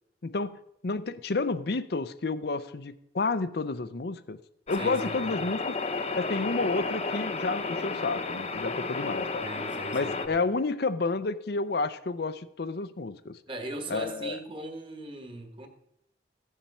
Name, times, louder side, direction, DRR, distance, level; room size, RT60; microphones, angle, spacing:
voice 1, 0.2-4.4 4.7-5.8 6.2-9.5 9.9-13.4 13.9-14.4, left 3 dB, 55° left, 12 dB, 0.5 m, -30 dB
sound 1, 4.7-10.3, left 3 dB, 35° left, 0.9 m, -32 dB
voice 2, 4.8-5.4 9.4-10.4 13.5-15.7, right 1 dB, 30° right, 5 dB, 1.5 m, -39 dB
14.5 x 7.2 x 5.5 m, 0.78 s
head